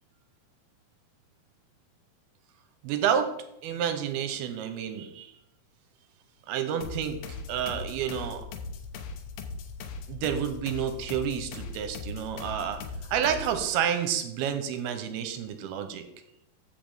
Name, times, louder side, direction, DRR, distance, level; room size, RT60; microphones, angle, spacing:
voice 1, 2.8-3.3 3.6-5.3 6.5-7.2 7.5-8.5 10.1-12.8 13.1-16.1, right 8 dB, 80° right, 8 dB, 2.6 m, -29 dB
sound 1, 6.8-13.7, left 4 dB, 80° left, 2.7 m, -39 dB
14.0 x 5.8 x 3.5 m, 0.80 s
omnidirectional pair, 4.6 m